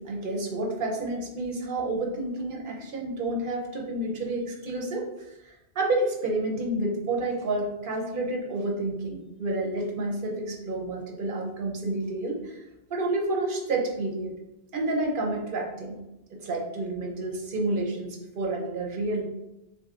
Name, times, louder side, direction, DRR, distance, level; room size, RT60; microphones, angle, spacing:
voice 1, 0.0-5.1 5.4-12.6 12.9-14.3 14.7-16.0 16.3-19.2, right 2 dB, 55° right, 0 dB, 0.9 m, -29 dB
6.3 x 2.2 x 2.4 m, 0.92 s
omnidirectional pair, 1.1 m